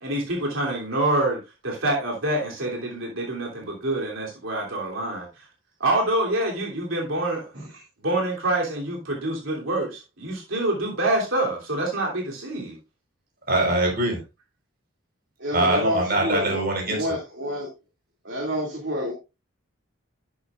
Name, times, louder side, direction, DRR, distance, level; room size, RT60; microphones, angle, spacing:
voice 1, 0.0-5.3 5.8-7.5 8.0-12.8, right 1 dB, 80° right, 3.1 m, -26 dB
voice 2, 13.5-14.2 15.5-17.2, right 1 dB, 50° right, 4.5 m, -23 dB
voice 3, 15.4-16.6 16.9-17.7 18.3-19.1, equal, 65° right, 2.4 m, -28 dB
11.5 x 9.2 x 2.5 m
head